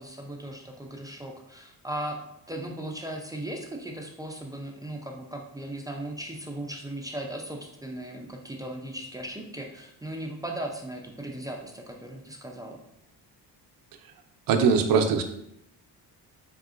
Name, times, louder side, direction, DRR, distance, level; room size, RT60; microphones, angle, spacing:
voice 1, 0.0-2.2 2.5-12.8, right 1 dB, 10° right, 1 dB, 0.4 m, -37 dB
voice 2, 14.5-15.2, right 5 dB, 55° right, 5 dB, 0.6 m, -21 dB
4.1 x 3.7 x 2.4 m, 0.77 s
cardioid pair, 105°, 41 cm